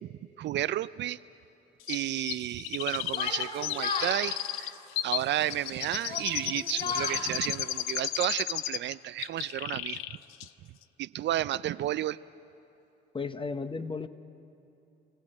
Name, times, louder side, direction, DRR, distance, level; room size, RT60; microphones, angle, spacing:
voice 1, 0.4-1.2 1.9-4.7 5.0-10.2 11.0-12.2, right 13 dB, 60° right, 16 dB, 0.4 m, -32 dB
Chirp tweet, 1.9-8.9 9.2-10.2 10.4-10.5, left 14 dB, 80° left, 0.5 m, -34 dB
Yell, 3.1-4.2 5.2-5.6 6.0-7.2, left 3 dB, 45° left, 4.4 m, -35 dB
voice 2, 13.1-14.1, left 4 dB, 25° left, 10 dB, 1.0 m, -34 dB
25.5 x 15.5 x 8.9 m, 2.8 s
supercardioid pair, 65°, 21 cm